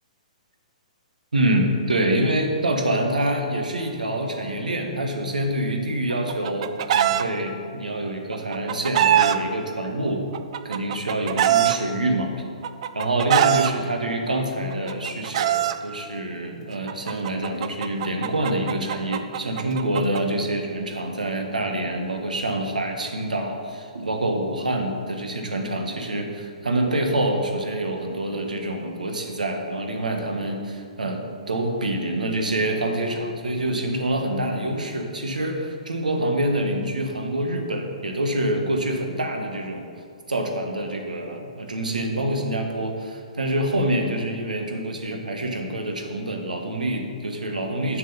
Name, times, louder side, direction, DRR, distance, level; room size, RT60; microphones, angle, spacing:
voice 1, 1.3-10.3 10.6-12.3 12.9-39.9 40.3-48.0, right 1 dB, 80° right, 3 dB, 1.4 m, -26 dB
Chicken rooster, 6.1-7.2 8.3-9.4 10.3-11.8 12.6-13.7 14.7-15.8 16.9-20.2, right 11 dB, 50° right, 0.5 m, -22 dB
7.2 x 6.1 x 7.0 m, 2.1 s
figure-of-eight pair, 120°, 4 cm